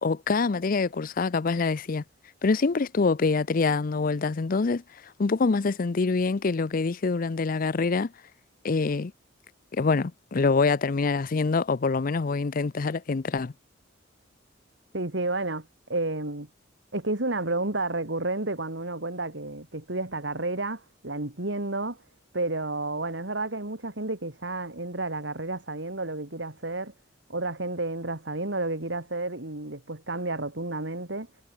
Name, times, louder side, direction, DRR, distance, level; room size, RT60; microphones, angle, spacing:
voice 1, 0.0-2.0 2.4-4.8 5.2-8.1 8.6-9.1 9.7-13.5, left 4 dB, 45° left, 0.5 m, -25 dB
voice 2, 14.9-15.6 15.9-16.5 16.9-22.0 22.3-26.9 27.3-31.3, right 2 dB, 65° right, 2.7 m, -31 dB
head